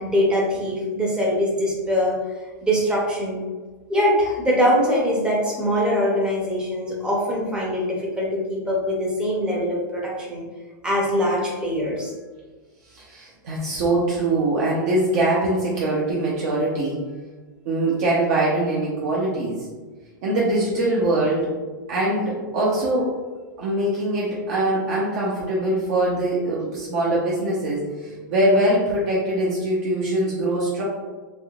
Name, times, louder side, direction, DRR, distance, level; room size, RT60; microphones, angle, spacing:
voice 1, 0.0-2.2 2.6-3.4 3.9-10.4 10.8-12.1, equal, 10° right, -3 dB, 0.6 m, -22 dB
voice 2, 12.9-17.0 17.6-19.7 20.2-21.5 21.9-23.1 23.6-30.8, right 1 dB, 55° right, -5 dB, 0.7 m, -22 dB
3.5 x 2.7 x 2.3 m, 1.4 s
supercardioid pair, 155°, 10 cm